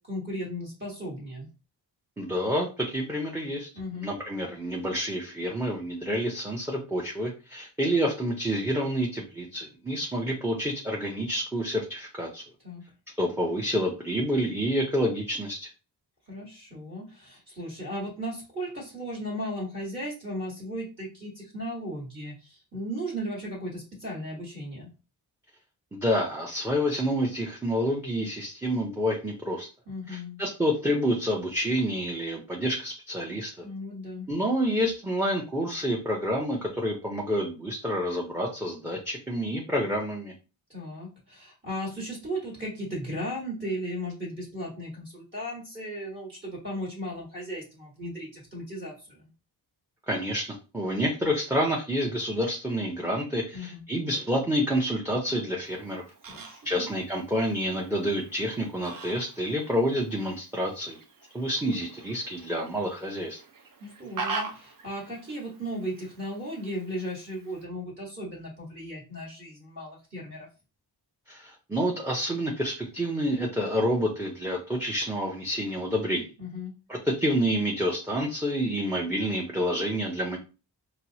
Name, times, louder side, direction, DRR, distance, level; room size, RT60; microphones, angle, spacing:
voice 1, 0.1-1.5 3.7-4.1 12.6-12.8 16.3-24.9 29.9-30.4 33.6-34.3 40.7-49.3 53.5-53.8 56.3-56.9 63.8-70.5 76.4-76.7, equal, 30° right, -4 dB, 1.4 m, -36 dB
voice 2, 2.2-3.7 4.0-12.4 13.2-15.7 25.9-29.7 30.1-33.6 34.3-40.3 50.1-56.0 56.6-61.0 61.3-63.4 71.3-76.3 76.9-80.4, equal, 5° right, -2 dB, 0.6 m, -28 dB
Fowl, 55.7-67.7, right 4 dB, 55° right, 0.6 m, -43 dB
4.4 x 2.0 x 2.7 m, 0.32 s
wide cardioid pair, 105°, 41 cm